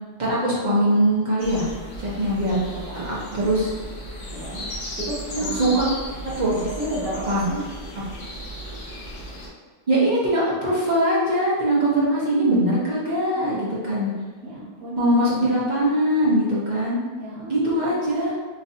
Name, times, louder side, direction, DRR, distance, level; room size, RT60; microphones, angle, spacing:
voice 1, 0.2-1.7 2.0-2.6 3.3-3.7 5.3-5.9 6.4-6.6 7.3-7.4 9.9-14.1 15.0-17.0 17.5-18.3, right 1 dB, 40° right, -7 dB, 0.7 m, -21 dB
sound 1, 1.4-9.5, equal, 70° left, 0.6 m, -35 dB
voice 2, 2.7-3.5 4.3-4.7 5.0-5.7 6.4-7.6 13.3-13.7 14.4-15.1 17.1-18.0, right 1 dB, 70° right, -6 dB, 1.0 m, -33 dB
3.1 x 2.6 x 2.6 m, 1.4 s
omnidirectional pair, 1.7 m